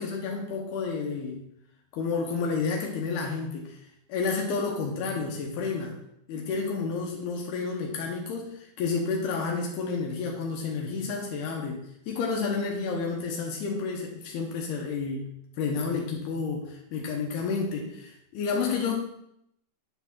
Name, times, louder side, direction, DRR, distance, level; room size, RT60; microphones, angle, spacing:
voice 1, 0.0-1.5 1.9-3.8 4.1-5.9 6.3-15.3 15.6-18.9, left 4 dB, 75° left, 0 dB, 2.9 m, -30 dB
10.0 x 4.0 x 5.9 m, 0.77 s
omnidirectional pair, 4.9 m